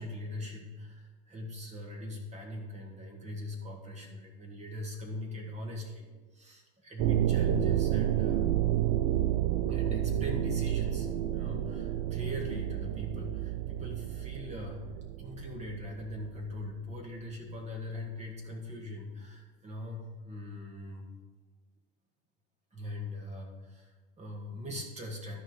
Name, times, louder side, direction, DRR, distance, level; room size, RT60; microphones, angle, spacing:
voice 1, 0.0-8.5 9.7-14.8 15.2-21.1 22.7-25.4, left 1 dB, 25° right, 0 dB, 2.0 m, -41 dB
sound 1, 7.0-16.4, right 12 dB, 65° right, 0.6 m, -30 dB
12.5 x 4.7 x 5.3 m, 1.3 s
hypercardioid pair, 95°, 29 cm